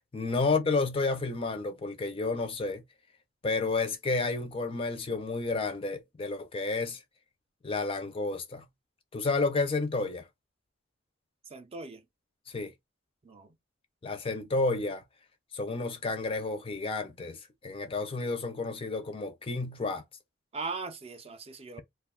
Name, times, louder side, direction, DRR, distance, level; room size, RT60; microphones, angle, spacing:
voice 1, 0.1-2.8 3.4-7.0 7.6-8.6 9.1-10.3 12.5-12.7 14.0-15.0 15.5-20.0, left 3 dB, 30° left, 0.4 m, -31 dB
voice 2, 11.5-12.0 13.2-13.5 20.5-21.8, right 4 dB, 30° right, 0.5 m, -39 dB
2.3 x 2.2 x 3.5 m
head